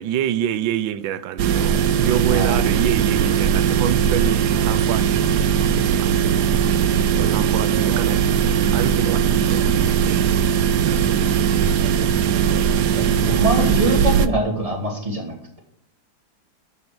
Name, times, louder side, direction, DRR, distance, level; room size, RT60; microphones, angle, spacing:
voice 1, 0.0-5.3 5.7-6.3 7.2-10.0 10.8-11.0, right 10 dB, 90° right, 13 dB, 1.4 m, -27 dB
sound 1, 1.4-14.3, right 8 dB, 70° right, 1.1 m, -19 dB
voice 2, 2.3-2.7 11.1-11.2 12.9-15.6, right 1 dB, 20° right, 0 dB, 2.5 m, -24 dB
12.0 x 4.4 x 6.8 m, 0.73 s
omnidirectional pair, 2.1 m